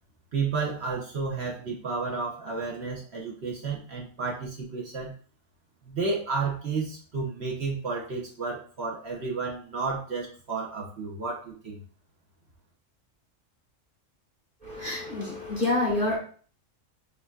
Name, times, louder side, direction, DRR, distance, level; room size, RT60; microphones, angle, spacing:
voice 1, 0.3-5.1 5.8-11.8, right 4 dB, 55° right, -3 dB, 1.2 m, -32 dB
voice 2, 14.6-16.2, left 2 dB, 30° right, -4 dB, 1.8 m, -27 dB
7.2 x 2.7 x 2.4 m, 0.44 s
omnidirectional pair, 1.4 m